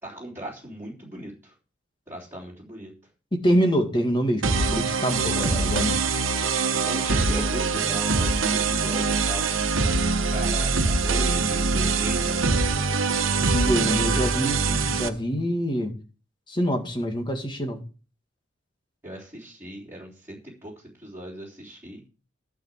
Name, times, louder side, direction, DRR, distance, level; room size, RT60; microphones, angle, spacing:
voice 1, 0.0-1.5 2.1-2.9 6.9-9.5 10.2-12.5 13.8-14.3 19.0-22.0, right 1 dB, 10° right, -5 dB, 3.4 m, -38 dB
voice 2, 3.3-6.0 13.4-16.0 16.5-17.8, equal, 25° left, 4 dB, 2.0 m, -25 dB
sound 1, 4.4-15.1, right 4 dB, 85° right, 1.2 m, -23 dB
12.0 x 5.1 x 7.5 m, 0.36 s
head